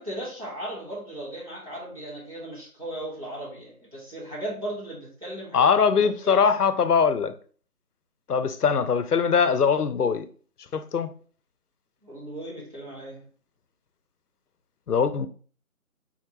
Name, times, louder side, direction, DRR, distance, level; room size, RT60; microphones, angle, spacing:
voice 1, 0.0-5.7 6.0-6.7 12.0-13.2, right 1 dB, 25° right, 1.6 m, -37 dB
voice 2, 5.5-7.3 8.3-10.3 10.7-11.1 14.9-15.3, left 6 dB, 80° left, 0.7 m, -22 dB
4.3 x 3.7 x 3.0 m
figure-of-eight pair, 180°, 45 cm